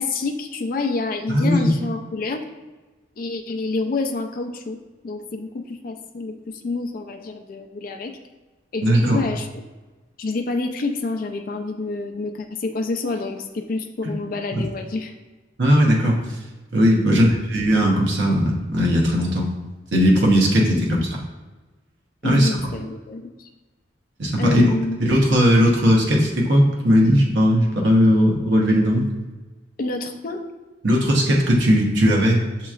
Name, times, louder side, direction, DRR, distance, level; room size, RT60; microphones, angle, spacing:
voice 1, 0.0-2.4 3.2-4.8 5.0-8.1 8.7-9.6 10.2-15.1 17.0-17.3 20.8-21.0 22.2-23.5 24.4-25.0 29.8-30.4, left 3 dB, 45° left, 4 dB, 0.4 m, -28 dB
voice 2, 1.3-1.7 8.8-9.2 14.5-14.6 15.6-16.2 16.7-19.5 19.9-21.0 22.2-22.5 24.2-24.6 25.0-29.0 30.8-32.4, equal, 65° right, -1 dB, 0.9 m, -17 dB
7.3 x 2.9 x 2.4 m, 1.2 s
head